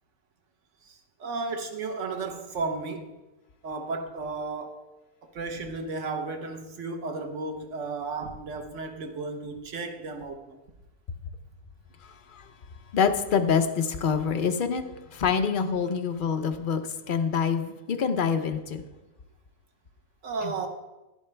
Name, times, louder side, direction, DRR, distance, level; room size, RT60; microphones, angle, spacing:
voice 1, 1.2-3.0 3.6-4.7 5.3-10.6 20.2-20.7, right 3 dB, 75° right, 1.3 m, -33 dB
voice 2, 12.9-14.8 15.1-16.8 17.1-18.8, left 6 dB, 50° left, 0.9 m, -25 dB
11.0 x 11.0 x 3.4 m
omnidirectional pair, 1.3 m